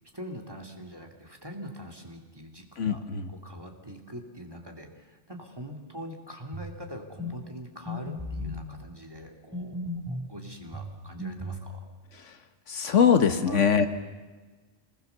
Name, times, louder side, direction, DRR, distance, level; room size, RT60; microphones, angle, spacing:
voice 1, 0.1-9.8 10.1-11.8 13.5-13.7, equal, 20° right, 2 dB, 2.5 m, -43 dB
voice 2, 2.8-3.3 12.2-12.4 12.7-13.9, left 7 dB, 90° left, 8 dB, 1.7 m, -22 dB
sound 1, 6.5-6.8 7.2-7.4 7.9-8.6 9.5-10.3 10.7-11.7, left 1 dB, 5° left, 7.1 m, -35 dB
26.0 x 20.0 x 6.9 m, 1.3 s
omnidirectional pair, 1.2 m